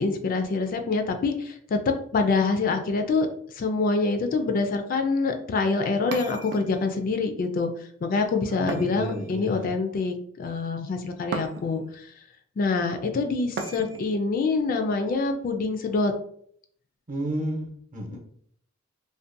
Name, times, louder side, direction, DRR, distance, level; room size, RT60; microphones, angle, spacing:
voice 1, 0.0-3.3 3.6-7.7 8.0-11.8 12.6-16.1 18.1-18.2, left 3 dB, 45° left, 6 dB, 0.3 m, -25 dB
sound 1, 6.1-7.1 8.7-9.7 11.3-11.9 13.6-14.2, right 4 dB, 60° right, 0.3 m, -36 dB
voice 2, 8.5-9.7 17.1-18.2, right 1 dB, 40° right, -1 dB, 0.7 m, -32 dB
2.5 x 2.1 x 2.5 m, 0.64 s
head